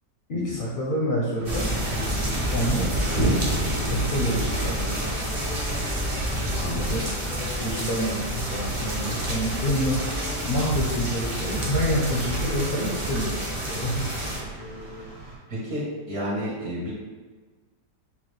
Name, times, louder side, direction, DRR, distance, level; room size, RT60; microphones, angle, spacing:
voice 1, 0.3-1.7 2.5-3.6 3.9-5.1 6.7-7.1 7.6-14.3, equal, 50° left, -4 dB, 0.6 m, -28 dB
sound 1, 1.3-15.4, right 3 dB, 85° right, 2.3 m, -44 dB
sound 2, 1.4-14.4, right 1 dB, 30° right, 0.5 m, -28 dB
sound 3, 3.6-15.1, left 2 dB, 85° left, 1.3 m, -42 dB
voice 2, 6.5-7.0 15.5-16.9, equal, 60° right, -6 dB, 1.9 m, -31 dB
7.0 x 2.4 x 3.1 m, 1.4 s
omnidirectional pair, 1.8 m